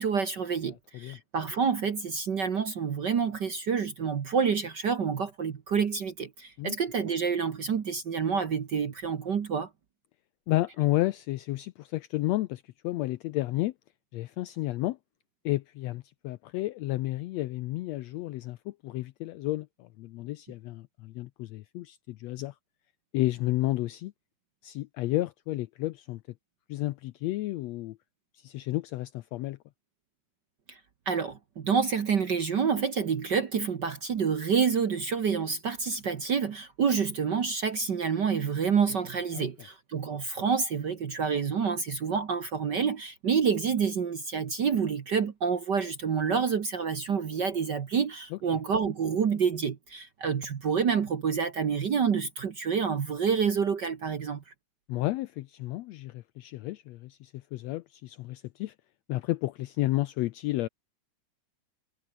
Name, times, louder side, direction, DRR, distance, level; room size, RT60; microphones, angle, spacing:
voice 1, 0.0-9.7 30.7-30.8 31.1-54.4, right 6 dB, 55° right, 1.2 m, -28 dB
voice 2, 0.7-1.2 6.6-6.8 10.5-13.7 14.1-15.0 15.4-22.5 23.1-24.1 24.6-26.2 26.7-28.0 28.4-29.6 39.3-39.5 48.3-48.4 54.9-58.7 59.1-60.7, left 17 dB, 85° left, 1.5 m, -32 dB
omnidirectional pair, 3.7 m